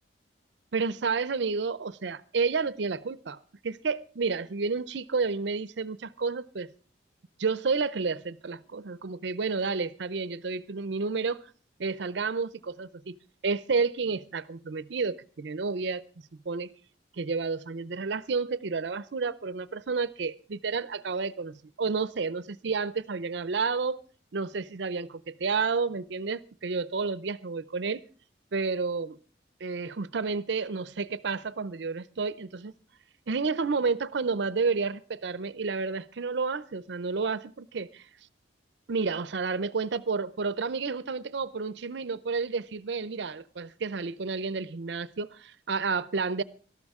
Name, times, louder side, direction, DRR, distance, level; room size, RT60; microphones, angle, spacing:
voice 1, 0.7-6.7 7.4-11.5 11.8-13.2 13.4-16.0 16.5-16.7 17.2-24.0 24.3-28.0 28.5-29.2 29.6-32.7 33.3-38.0 38.9-46.4, right 4 dB, 65° right, 0.6 m, -30 dB
18.0 x 13.0 x 3.6 m
head